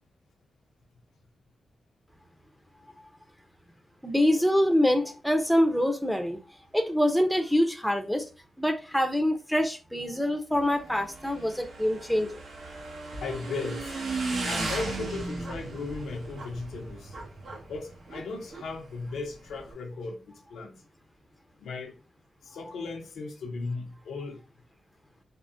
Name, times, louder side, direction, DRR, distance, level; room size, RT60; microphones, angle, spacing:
voice 1, 4.0-6.4 6.7-8.3 8.6-12.4, equal, ahead, 0.6 m, -25 dB
Motorcycle / Engine, 10.5-19.7, right 3 dB, 65° right, 1.0 m, -36 dB
voice 2, 13.2-14.0 14.4-17.1 17.7-20.8 21.6-21.9 22.4-24.4, left 3 dB, 85° left, 0.6 m, -36 dB
3.6 x 2.1 x 2.4 m
cardioid pair, 75°, 0 cm